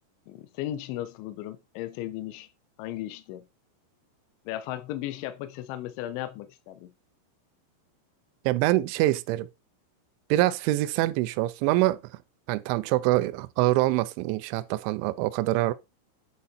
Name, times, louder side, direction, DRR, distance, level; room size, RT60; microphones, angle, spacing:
voice 1, 0.3-2.5 2.8-3.5 4.5-6.9, left 13 dB, 80° left, 2.9 m, -36 dB
voice 2, 8.5-9.5 10.3-12.0 12.5-15.7, right 17 dB, 85° right, 2.7 m, -25 dB
9.6 x 4.2 x 4.2 m
omnidirectional pair, 5.9 m